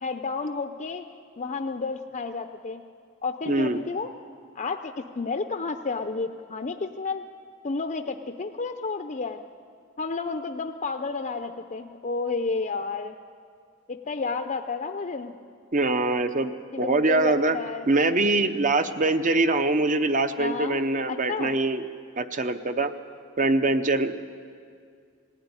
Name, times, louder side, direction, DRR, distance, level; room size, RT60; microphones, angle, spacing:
voice 1, 0.0-1.0 1.4-2.8 3.2-4.1 4.6-7.2 7.6-9.4 10.0-13.2 13.9-15.4 16.7-17.9 20.4-20.8 21.1-21.5, left 4 dB, 40° left, 7 dB, 0.6 m, -31 dB
voice 2, 3.5-3.8 15.7-16.5 16.8-17.6 17.9-21.8 22.2-22.9 23.4-24.2, right 2 dB, 40° right, 10 dB, 0.9 m, -23 dB
19.0 x 15.0 x 9.7 m, 2.2 s
head